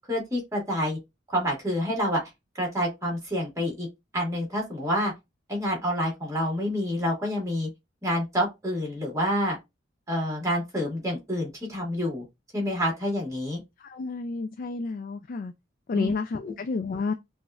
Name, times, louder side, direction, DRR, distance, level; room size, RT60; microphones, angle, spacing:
voice 1, 0.1-1.0 1.3-2.2 2.5-3.9 4.1-5.1 5.5-7.7 8.0-9.6 10.1-12.2 12.5-13.6 15.9-16.1, equal, 15° right, 1.8 m, -28 dB
voice 2, 13.8-15.5 15.9-17.1, left 4 dB, 45° left, 0.3 m, -30 dB
5.8 x 2.5 x 2.4 m
head